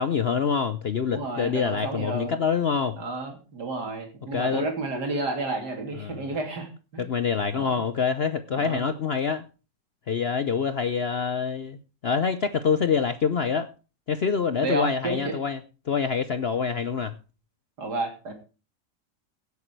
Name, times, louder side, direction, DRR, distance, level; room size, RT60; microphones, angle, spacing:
voice 1, 0.0-3.0 4.3-4.7 6.0-6.3 7.1-9.4 10.1-13.7 14.1-15.6 15.9-17.1, left 6 dB, 65° left, 0.6 m, -26 dB
voice 2, 1.1-2.3 3.0-7.1 7.5-7.8 8.5-8.9 14.6-15.3 17.8-18.3, right 2 dB, 65° right, 3.4 m, -31 dB
17.0 x 8.3 x 4.6 m
omnidirectional pair, 1.9 m